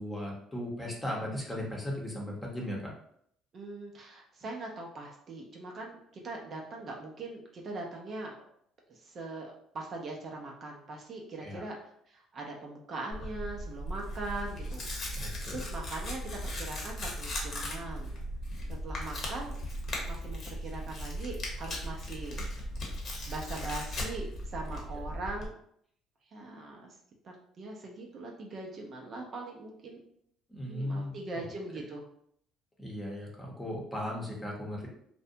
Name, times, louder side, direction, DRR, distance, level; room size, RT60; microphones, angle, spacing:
voice 1, 0.0-2.9 11.4-11.6 15.1-15.6 24.9-25.0 30.5-31.4 32.8-34.9, left 1 dB, 15° left, -3 dB, 0.9 m, -37 dB
voice 2, 3.5-8.5 8.9-11.8 12.1-14.8 15.5-18.2 18.7-19.6 20.1-22.4 23.3-25.5 26.3-26.9 27.2-30.0 30.7-32.0, right 2 dB, 45° right, 0 dB, 0.5 m, -41 dB
Tearing, 13.1-25.5, equal, 50° left, 0.8 m, -37 dB
2.6 x 2.1 x 2.6 m, 0.68 s
supercardioid pair, 85°, 0 cm